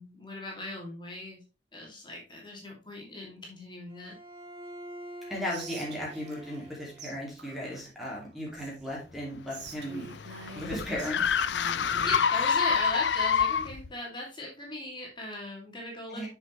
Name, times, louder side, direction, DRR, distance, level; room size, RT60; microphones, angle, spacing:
voice 1, 0.0-1.4 1.7-4.2 12.0-16.3, left 1 dB, 25° left, -2 dB, 2.6 m, -39 dB
Bowed string instrument, 3.9-7.3, right 1 dB, 30° right, 1.6 m, -46 dB
voice 2, 5.3-10.1 10.5-11.2 16.1-16.3, equal, ahead, -4 dB, 2.5 m, -36 dB
Whispering, 5.5-6.7 7.0-7.1 7.4-8.9 9.5-12.6, right 3 dB, 80° right, 1.7 m, -47 dB
sound 1, 9.4-13.9, left 6 dB, 85° left, 0.5 m, -27 dB
7.3 x 6.4 x 3.2 m, 0.31 s
head